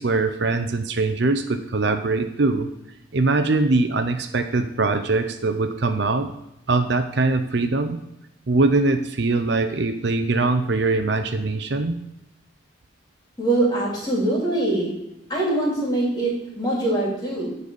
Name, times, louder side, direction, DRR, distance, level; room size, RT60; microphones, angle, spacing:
voice 1, 0.0-2.7 3.1-6.3 6.7-8.0 8.5-11.9, right 3 dB, 60° right, 8 dB, 0.6 m, -22 dB
voice 2, 13.4-14.9 15.3-17.5, right 2 dB, 20° left, -4 dB, 2.9 m, -23 dB
11.0 x 4.1 x 6.9 m, 0.86 s
head